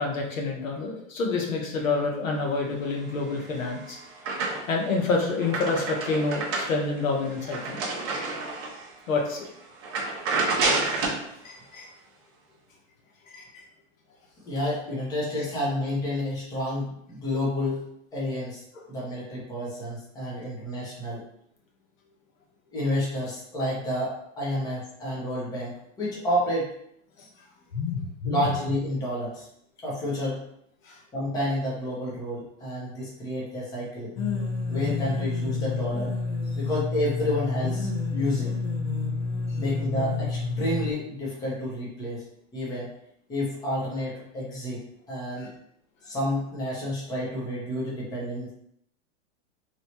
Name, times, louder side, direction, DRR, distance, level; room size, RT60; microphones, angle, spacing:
voice 1, 0.0-4.0 4.7-7.8 9.1-9.5 11.4-11.9 13.3-13.6 27.2-27.3 27.7-28.5 30.8-31.0 45.4-45.5, left 3 dB, 90° left, 0 dB, 1.2 m, -28 dB
sound 1, 3.3-4.9 5.2-8.9 9.3-9.5 9.8-11.3, right 3 dB, 20° right, 0.4 m, -29 dB
voice 2, 14.4-18.6 18.9-21.3 22.7-26.7 28.2-29.5 29.8-30.4 31.1-34.1 34.7-36.1 36.6-38.6 39.6-42.2 42.5-42.9 43.3-45.5 46.0-48.5, left 1 dB, 10° left, -5 dB, 0.9 m, -30 dB
sound 2, 34.2-40.9, left 3 dB, 70° left, 1.1 m, -29 dB
3.2 x 2.7 x 4.2 m, 0.71 s
hypercardioid pair, 155°, 39 cm